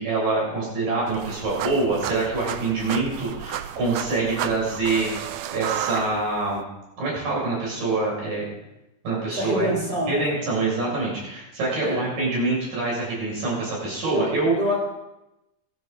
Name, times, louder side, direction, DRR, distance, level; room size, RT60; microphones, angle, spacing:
voice 1, 0.0-5.1 5.5-6.7 7.0-8.5 9.0-9.7 10.1-14.5, right 3 dB, 55° right, -4 dB, 8.1 m, -25 dB
sound 1, 1.1-6.6, right 11 dB, 80° right, 2.1 m, -32 dB
voice 2, 9.3-10.2 11.8-12.0 14.0-14.9, equal, 30° right, -5 dB, 3.9 m, -26 dB
18.5 x 12.5 x 4.0 m, 0.93 s
omnidirectional pair, 4.6 m